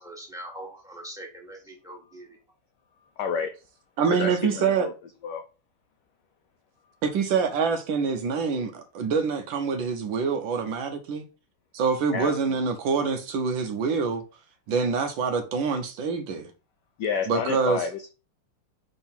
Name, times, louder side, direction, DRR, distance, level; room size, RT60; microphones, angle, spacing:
voice 1, 0.0-2.4, right 1 dB, ahead, 1.4 m, -42 dB
voice 2, 3.2-3.5 4.2-4.9 5.2-5.4 12.1-12.4 17.0-18.1, left 6 dB, 75° left, 0.9 m, -29 dB
voice 3, 4.0-4.9 7.0-11.2 11.7-14.2 14.7-16.5 17.3-17.8, right 5 dB, 70° right, 1.4 m, -26 dB
5.4 x 4.0 x 4.4 m
omnidirectional pair, 2.4 m